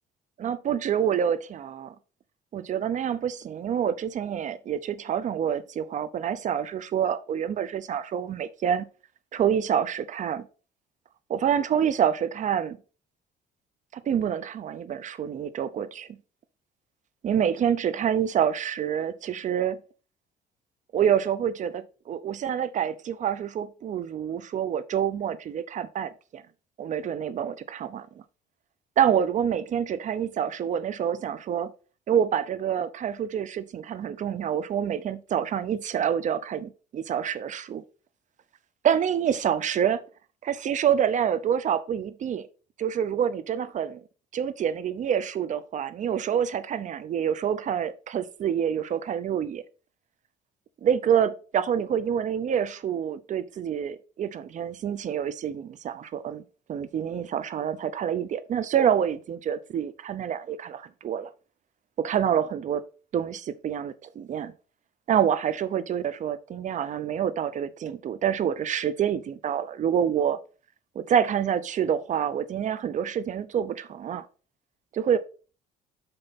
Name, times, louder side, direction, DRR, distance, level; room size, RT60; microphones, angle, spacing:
voice 1, 0.4-1.9 2.5-8.9 9.3-10.5 11.3-12.8 13.9-16.2 17.2-19.8 20.9-26.4 26.8-28.1 29.0-31.7 32.1-37.8 38.8-40.0 40.4-42.5 42.8-44.0 44.3-49.6 50.8-56.4 56.7-61.3 62.0-62.8 63.1-64.5 65.1-70.4 70.9-74.3 74.9-75.2, right 8 dB, 45° right, 0.6 m, -27 dB
6.6 x 5.3 x 4.1 m
cardioid pair, 110°, 17 cm